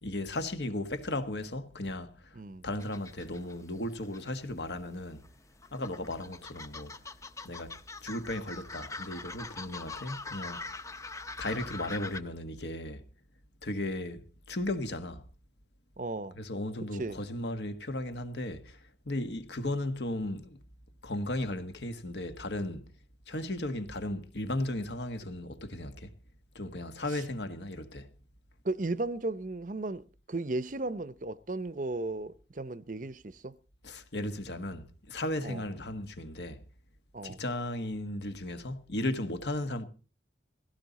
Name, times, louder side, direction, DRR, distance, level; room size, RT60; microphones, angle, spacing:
voice 1, 0.0-2.3 2.6-5.2 5.7-6.9 7.4-7.7 8.0-10.6 11.4-13.0 13.6-15.2 16.4-18.8 19.0-20.6 21.0-22.9 23.3-26.1 26.5-28.1 33.8-36.6 37.2-39.8, left 1 dB, 70° left, 1.6 m, -35 dB
voice 2, 2.3-2.7 16.0-16.4 16.9-17.2 27.1-27.2 28.6-33.6 35.4-35.6 37.1-37.4, right 2 dB, 45° right, 0.7 m, -35 dB
sound 1, 2.8-4.4 4.7-12.2, left 3 dB, 15° left, 0.7 m, -43 dB
17.0 x 16.5 x 4.1 m
head